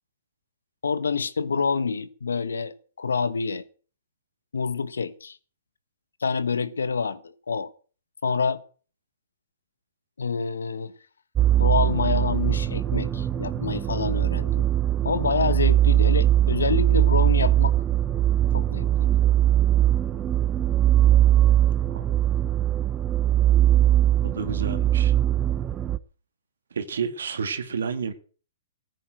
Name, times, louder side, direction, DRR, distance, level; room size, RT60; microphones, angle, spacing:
voice 1, 0.8-3.6 4.5-5.4 6.2-7.7 8.2-8.6 10.2-10.9 11.6-14.6 15.0-17.7 18.5-19.1, left 5 dB, 90° left, 1.3 m, -27 dB
sound 1, 11.4-26.0, right 12 dB, 20° right, 0.9 m, -21 dB
voice 2, 24.2-25.1 26.7-28.1, right 6 dB, 80° right, 2.2 m, -30 dB
15.0 x 9.3 x 7.7 m
hypercardioid pair, 135°, 0 cm